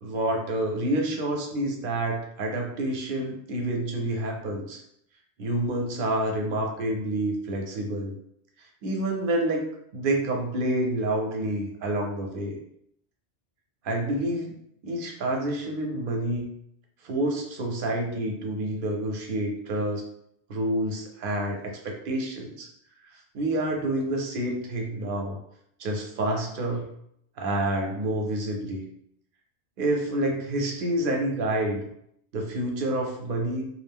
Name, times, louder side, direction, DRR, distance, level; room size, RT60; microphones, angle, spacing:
voice 1, 0.0-4.8 5.4-8.1 8.8-9.6 9.9-12.6 13.8-14.6 14.8-16.5 17.0-20.0 20.5-21.6 21.8-22.7 23.0-25.4 25.8-26.9 27.4-28.8 29.8-31.8 32.3-33.7, right 1 dB, 60° right, 1 dB, 0.7 m, -28 dB
2.4 x 2.0 x 3.4 m, 0.73 s
omnidirectional pair, 1.2 m